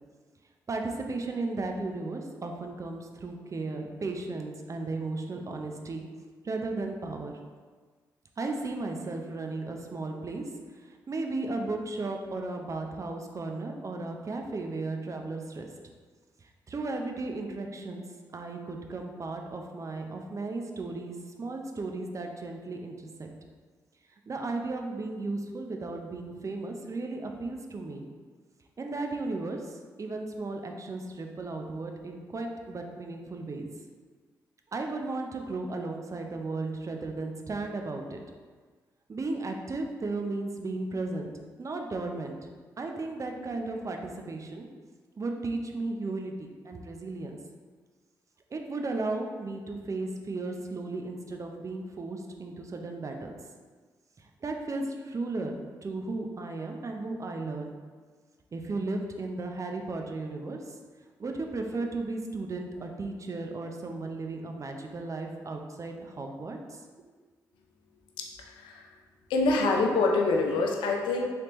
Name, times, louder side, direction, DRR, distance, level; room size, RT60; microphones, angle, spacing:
voice 1, 0.7-6.1 6.4-7.3 8.4-10.4 10.7-15.7 16.4-18.0 18.3-23.3 24.3-28.1 28.8-33.7 34.7-38.2 39.1-41.3 41.6-42.4 42.8-44.7 45.2-47.4 48.5-53.3 54.2-57.8 58.5-60.8 61.2-66.8, right 3 dB, 40° right, 3 dB, 0.5 m, -35 dB
voice 2, 68.2-68.9 69.3-71.2, left 3 dB, 80° left, 1 dB, 0.4 m, -26 dB
3.2 x 2.9 x 3.0 m, 1.5 s
supercardioid pair, 45°, 8 cm